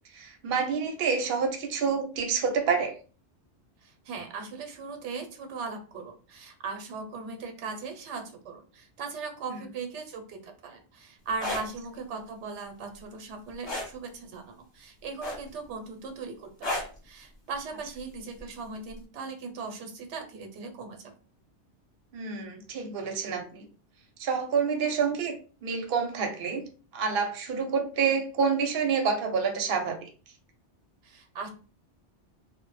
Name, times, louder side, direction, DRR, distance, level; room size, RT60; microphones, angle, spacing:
voice 1, 0.1-2.9 9.5-9.6 22.1-23.7 24.2-25.4 25.6-26.6 26.9-30.1, right 5 dB, 60° right, 3 dB, 0.7 m, -28 dB
voice 2, 3.8-21.0 31.0-31.5, right 4 dB, 85° right, 4 dB, 0.9 m, -39 dB
sound 1, 11.3-11.6 13.6-13.9 15.2-15.6 16.6-17.0 18.4-18.6, left 1 dB, 30° left, 0.7 m, -31 dB
2.0 x 2.0 x 3.0 m, 0.38 s
omnidirectional pair, 1.2 m